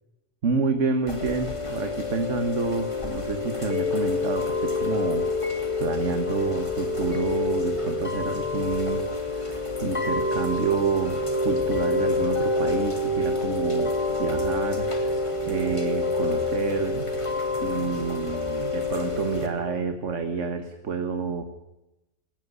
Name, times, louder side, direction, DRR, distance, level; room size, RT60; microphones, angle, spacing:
voice 1, 0.4-5.3 5.8-11.2 11.4-15.2 15.5-17.1 17.6-21.4, right 4 dB, 90° right, 8 dB, 1.8 m, -29 dB
Chime / Rain, 1.1-19.5, left 2 dB, 25° left, 3.1 m, -27 dB
18.5 x 17.0 x 9.7 m, 0.96 s
omnidirectional pair, 1.2 m